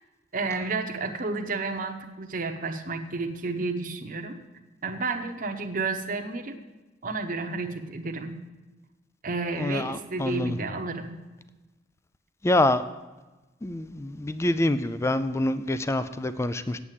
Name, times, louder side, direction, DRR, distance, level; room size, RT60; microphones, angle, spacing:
voice 1, 0.3-4.4 4.8-6.6 7.0-8.4 9.2-11.1, right 3 dB, 50° right, 5 dB, 1.0 m, -31 dB
voice 2, 9.6-10.6 12.4-12.8 13.6-16.8, left 1 dB, 15° left, 13 dB, 0.4 m, -26 dB
8.5 x 8.1 x 7.4 m, 1.2 s
head